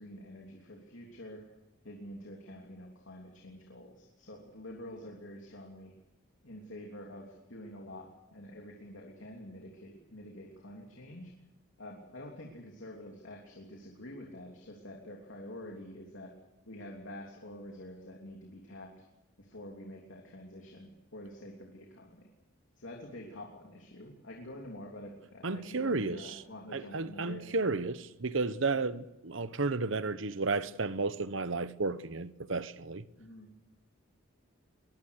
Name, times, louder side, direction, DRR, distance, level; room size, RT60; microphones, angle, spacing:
voice 1, 0.0-1.4 1.8-5.9 6.4-11.3 11.8-16.3 16.7-18.9 19.4-22.3 22.8-27.5 33.2-33.5, left 1 dB, 65° left, 3.2 m, -47 dB
voice 2, 25.4-26.4 26.7-33.0, right 3 dB, 65° right, 1.0 m, -33 dB
22.5 x 21.5 x 6.6 m
head